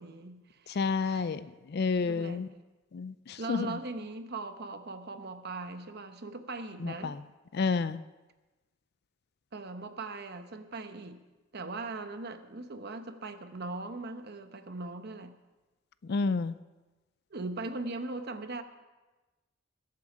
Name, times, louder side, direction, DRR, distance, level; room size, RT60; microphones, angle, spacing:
voice 1, 0.0-1.4 2.0-2.5 3.4-7.2 9.5-11.2 11.5-15.3 17.3-18.6, right 3 dB, 55° right, 8 dB, 0.9 m, -40 dB
voice 2, 0.8-1.4 1.7-2.5 2.9-3.7 6.8-7.1 7.5-8.0 16.1-16.5, left 4 dB, 55° left, 15 dB, 0.4 m, -30 dB
21.5 x 7.6 x 5.0 m, 1.2 s
head